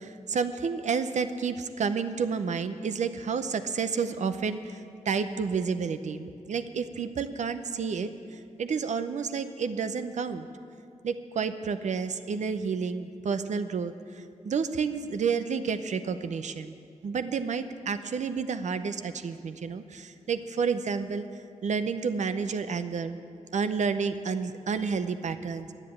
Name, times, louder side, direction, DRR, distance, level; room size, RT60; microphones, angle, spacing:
voice 1, 0.0-10.5 11.0-16.7 17.0-21.3 21.6-23.2 23.5-25.7, right 5 dB, 75° right, 11 dB, 0.7 m, -30 dB
10.5 x 9.9 x 8.7 m, 2.4 s
wide cardioid pair, 145°, 12 cm